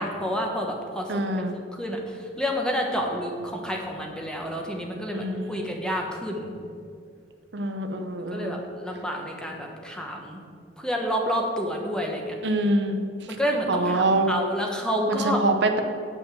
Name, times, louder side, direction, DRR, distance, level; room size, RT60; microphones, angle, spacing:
voice 1, 0.0-6.5 8.3-10.4 10.8-12.3 13.3-15.4, equal, 5° left, 1 dB, 1.1 m, -29 dB
voice 2, 1.1-1.5 5.1-5.7 7.5-8.6 12.4-13.0 13.7-14.3 15.1-15.8, right 2 dB, 65° right, 6 dB, 0.8 m, -25 dB
8.8 x 5.2 x 7.5 m, 2.3 s
head